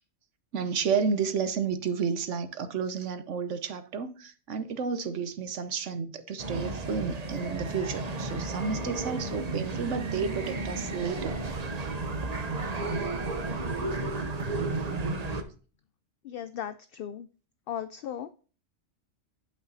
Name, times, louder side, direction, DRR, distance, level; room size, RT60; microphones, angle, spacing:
voice 1, 0.5-11.4, right 6 dB, 80° right, 1.2 m, -31 dB
sound 1, 6.4-15.4, right 3 dB, 35° right, 1.0 m, -33 dB
voice 2, 16.2-17.3 17.7-18.3, left 10 dB, 60° left, 0.6 m, -36 dB
11.0 x 5.9 x 4.1 m
omnidirectional pair, 1.2 m